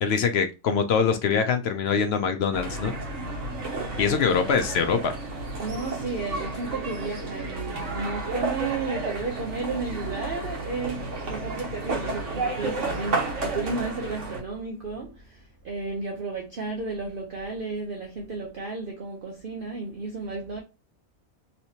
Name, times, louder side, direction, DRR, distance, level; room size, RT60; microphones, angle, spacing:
voice 1, 0.0-2.9 4.0-5.2, left 6 dB, 65° left, 0.7 m, -23 dB
sound 1, 2.5-14.4, right 2 dB, 65° right, 1.4 m, -32 dB
voice 2, 5.6-20.6, right 3 dB, 50° right, 0.7 m, -33 dB
3.2 x 2.9 x 2.7 m
omnidirectional pair, 1.4 m